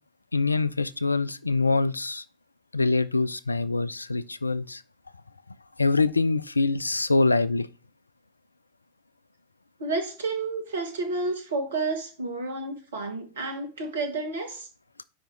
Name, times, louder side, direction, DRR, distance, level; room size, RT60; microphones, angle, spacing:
voice 1, 0.3-2.2 2.7-4.8 5.8-7.7, left 3 dB, 80° left, 0.4 m, -24 dB
voice 2, 9.8-14.7, right 3 dB, 65° right, 1.7 m, -30 dB
5.1 x 5.1 x 6.2 m
figure-of-eight pair, 90°, 0 cm